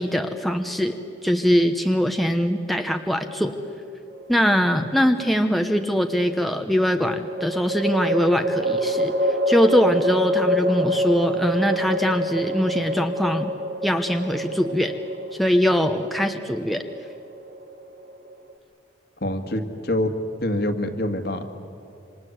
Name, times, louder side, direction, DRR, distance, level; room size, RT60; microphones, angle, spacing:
voice 1, 0.0-3.5 4.3-9.1 9.5-13.5 13.8-14.9 15.4-16.9, equal, ahead, 5 dB, 1.0 m, -22 dB
sound 1, 4.1-4.9 7.2-18.5, equal, 55° right, 2.4 m, -26 dB
voice 2, 19.2-20.1 20.4-21.5, left 1 dB, 55° left, 7 dB, 2.0 m, -25 dB
27.5 x 26.5 x 8.1 m, 2.8 s
head